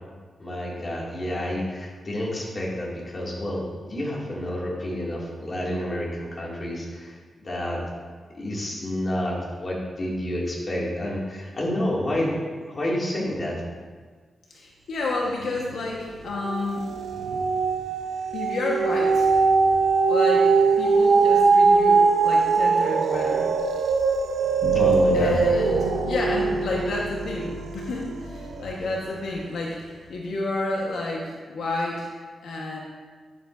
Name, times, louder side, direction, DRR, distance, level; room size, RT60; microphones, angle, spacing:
voice 1, 0.4-7.8 8.3-12.4 12.7-13.6 24.7-25.4, left 1 dB, 35° left, -4 dB, 2.2 m, -29 dB
voice 2, 14.5-16.9 18.3-19.3 20.1-23.5 25.1-32.1 32.4-32.8, left 2 dB, 85° left, -2 dB, 1.2 m, -30 dB
sound 1, 15.4-15.9 16.3-28.7 29.3-29.4, right 4 dB, 80° right, 0.6 m, -21 dB
sound 2, 24.6-29.9, left 3 dB, 65° left, 0.5 m, -34 dB
10.5 x 7.7 x 2.6 m, 1.5 s
wide cardioid pair, 110°, 0 cm